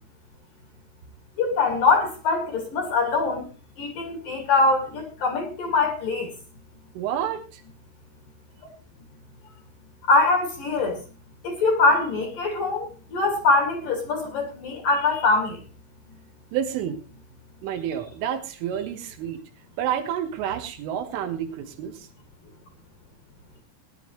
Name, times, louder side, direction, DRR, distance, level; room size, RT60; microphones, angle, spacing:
voice 1, 1.4-3.5 3.8-6.3 10.1-11.0 11.4-15.6, left 3 dB, 50° left, 4 dB, 3.3 m, -23 dB
voice 2, 7.0-7.6 16.5-17.0 17.6-19.4 19.8-22.1, right 9 dB, 75° right, 6 dB, 3.7 m, -29 dB
20.0 x 11.0 x 3.2 m, 0.30 s
omnidirectional pair, 6.0 m